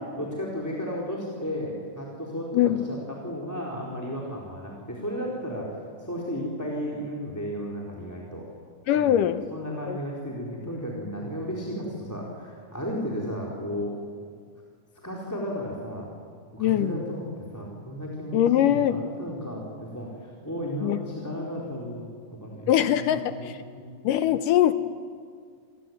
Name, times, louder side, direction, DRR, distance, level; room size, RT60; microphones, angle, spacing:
voice 1, 0.0-8.5 9.0-9.2 9.5-13.9 15.0-16.1 16.5-22.1 22.4-24.0, equal, 5° left, -3 dB, 3.9 m, -34 dB
voice 2, 8.9-9.5 9.9-10.0 16.6-16.9 18.3-19.0 20.8-21.0 22.7-23.6 24.0-24.7, left 11 dB, 75° left, 11 dB, 2.3 m, -22 dB
29.0 x 20.5 x 9.5 m, 2.1 s
omnidirectional pair, 4.1 m